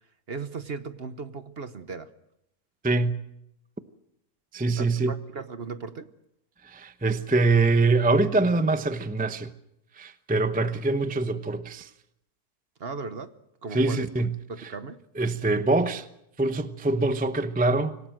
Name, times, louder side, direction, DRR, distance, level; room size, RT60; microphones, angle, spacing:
voice 1, 0.3-2.1 4.8-6.1 12.8-13.3 13.6-14.1 14.5-15.0, right 4 dB, 45° right, 1.1 m, -37 dB
voice 2, 2.8-3.2 4.5-5.1 6.6-9.5 10.0-11.9 13.7-14.3 15.2-16.1 16.4-18.0, right 3 dB, 10° right, 0.6 m, -24 dB
26.0 x 17.5 x 7.8 m
omnidirectional pair, 1.6 m